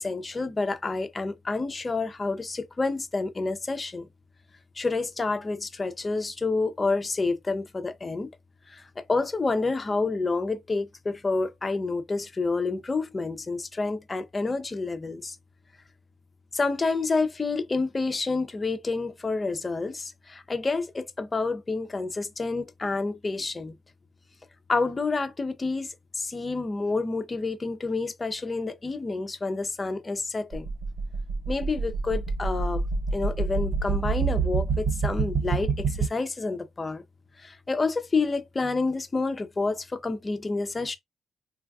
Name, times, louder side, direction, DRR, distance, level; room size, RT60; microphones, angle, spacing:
voice 1, 0.0-4.1 4.8-8.3 8.7-15.4 16.5-23.7 24.7-30.7 31.5-32.8 33.1-37.0 37.4-41.0, left 3 dB, 25° left, 0.5 m, -29 dB
sound 1, 30.5-36.1, right 4 dB, 50° right, 0.4 m, -27 dB
3.2 x 2.3 x 2.3 m
cardioid pair, 90°, 0 cm